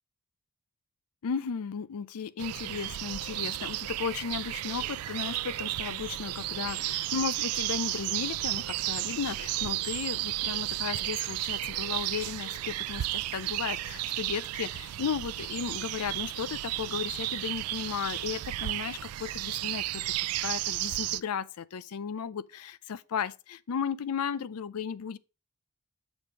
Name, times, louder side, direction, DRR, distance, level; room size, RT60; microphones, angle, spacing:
voice 1, 1.2-25.2, left 6 dB, 80° left, 0.5 m, -35 dB
sound 1, 2.4-21.2, right 16 dB, 75° right, 0.3 m, -33 dB
7.1 x 5.1 x 4.5 m
head